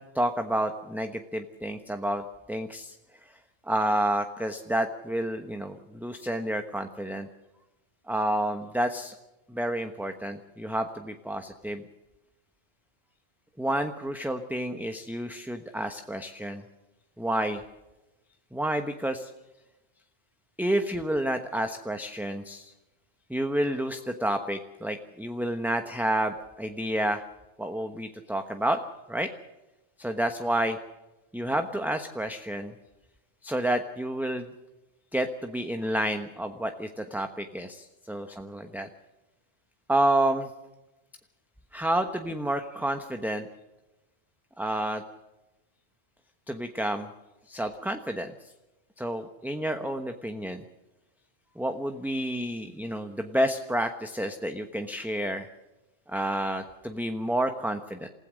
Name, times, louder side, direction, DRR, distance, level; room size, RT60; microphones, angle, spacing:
voice 1, 0.1-2.2 2.5-3.0 3.7-7.3 8.1-9.1 9.5-11.8 13.6-16.6 17.2-17.6 18.5-19.3 20.6-22.7 23.3-27.2 27.6-28.8 29.1-29.3 30.0-30.8 31.3-32.7 33.4-34.5 35.1-38.9 39.9-40.5 41.7-43.5 44.6-45.0 46.5-47.1 47.5-48.3 49.0-50.6 51.6-55.5 56.1-58.1, right 1 dB, ahead, 6 dB, 1.0 m, -29 dB
28.0 x 16.0 x 6.4 m, 1.0 s
omnidirectional pair, 1.1 m